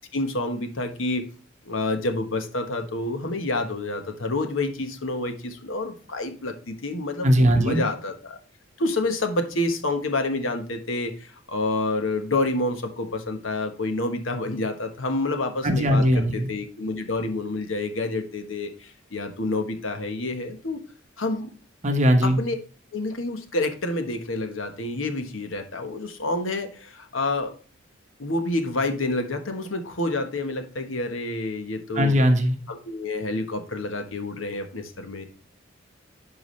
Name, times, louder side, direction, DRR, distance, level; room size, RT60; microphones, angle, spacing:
voice 1, 0.1-1.3 1.7-7.3 7.6-8.4 8.8-20.8 21.2-21.5 22.2-22.6 22.9-27.5 28.2-32.2 32.7-35.3, left 2 dB, 85° left, 6 dB, 1.2 m, -28 dB
voice 2, 7.2-7.8 15.6-16.5 21.8-22.4 31.9-32.5, equal, 40° right, 5 dB, 1.2 m, -19 dB
10.5 x 4.8 x 3.2 m, 0.39 s
head